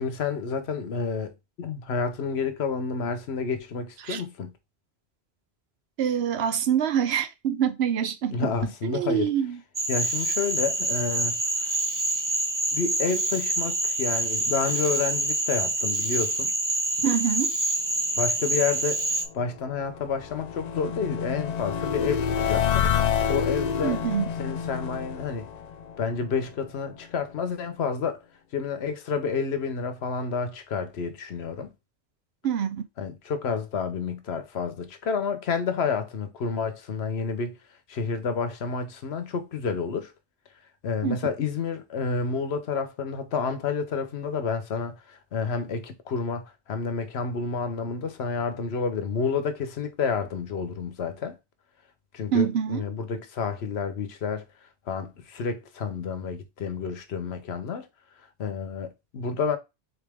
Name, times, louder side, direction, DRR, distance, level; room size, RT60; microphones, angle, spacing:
voice 1, 0.0-4.5 8.3-9.3 9.9-11.8 12.7-16.5 18.2-19.1 19.3-24.0 24.4-25.5 26.0-28.2 28.5-31.7 33.0-37.6 37.9-40.1 40.8-51.4 52.1-57.9 58.4-59.6, left 5 dB, 85° left, 1.1 m, -30 dB
voice 2, 6.0-8.4 8.8-9.6 17.0-17.5 23.8-24.2 32.4-32.8 41.0-41.2 52.3-52.8, right 8 dB, 80° right, 0.9 m, -25 dB
Cricket / Frog, 9.8-19.3, right 2 dB, 25° right, 0.5 m, -26 dB
sound 1, 19.3-26.5, left 7 dB, 50° left, 0.5 m, -28 dB
4.0 x 3.5 x 3.4 m
omnidirectional pair, 1.1 m